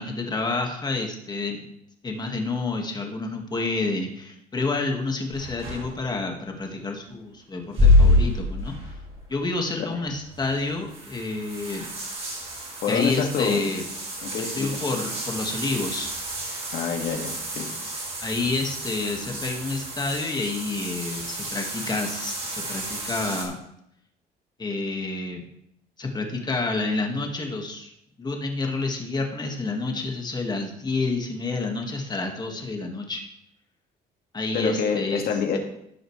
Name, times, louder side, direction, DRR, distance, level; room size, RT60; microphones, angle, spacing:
voice 1, 0.0-1.6 2.0-8.8 9.3-11.9 12.9-13.8 14.4-16.1 18.2-23.5 24.6-25.5 26.0-27.9 28.2-33.2 34.3-35.2, left 3 dB, 25° left, 2 dB, 1.8 m, -29 dB
sound 1, 5.3-6.3 7.6-9.3 9.6-9.7 10.1-23.5, left 1 dB, 35° right, 3.9 m, -27 dB
voice 2, 12.8-13.6 14.2-14.8 16.7-17.7 34.5-35.6, left 6 dB, 65° left, 2 dB, 2.0 m, -27 dB
15.5 x 6.3 x 3.3 m, 0.75 s
cardioid pair, 110°, 17 cm